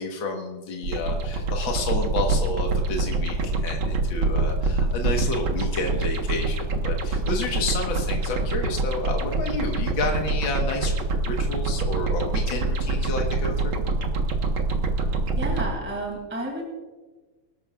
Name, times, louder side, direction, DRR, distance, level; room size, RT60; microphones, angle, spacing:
voice 1, 0.0-6.6 6.8-10.9 11.3-13.8, left 2 dB, 75° left, 1 dB, 2.2 m, -30 dB
sound 1, 0.8-15.7, right 2 dB, 80° right, 2.2 m, -25 dB
voice 2, 15.4-16.6, right 1 dB, 5° right, -1 dB, 2.5 m, -31 dB
23.5 x 13.0 x 2.4 m, 1.3 s
omnidirectional pair, 2.2 m